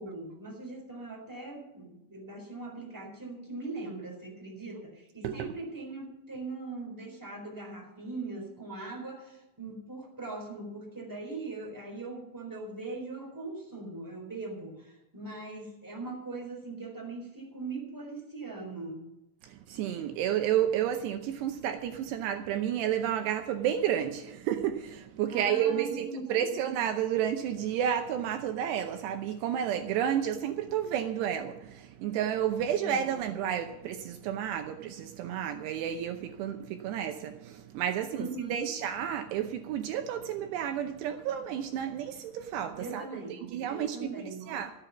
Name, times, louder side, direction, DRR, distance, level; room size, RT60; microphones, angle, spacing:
voice 1, 0.0-19.1 25.3-26.6 32.8-33.1 38.1-38.7 42.8-44.6, right 3 dB, 5° right, 3.6 m, -40 dB
voice 2, 19.4-43.2 43.5-44.1 44.5-44.7, right 10 dB, 80° right, 2.8 m, -31 dB
14.5 x 8.4 x 7.0 m
omnidirectional pair, 5.1 m